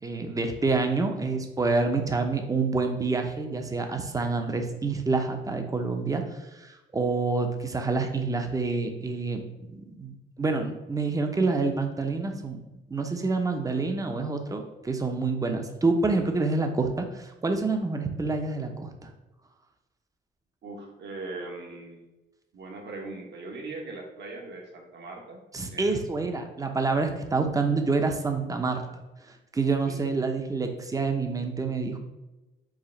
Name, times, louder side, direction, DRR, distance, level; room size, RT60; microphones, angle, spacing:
voice 1, 0.0-6.2 6.5-12.6 12.9-18.9 25.5-28.8 29.5-32.0, right 3 dB, 15° right, 5 dB, 0.6 m, -27 dB
voice 2, 20.6-22.1 22.5-25.4 25.7-26.1 29.8-30.0, right 3 dB, 60° right, 1 dB, 1.2 m, -40 dB
4.8 x 2.4 x 4.3 m, 1.0 s
cardioid pair, 90°, 20 cm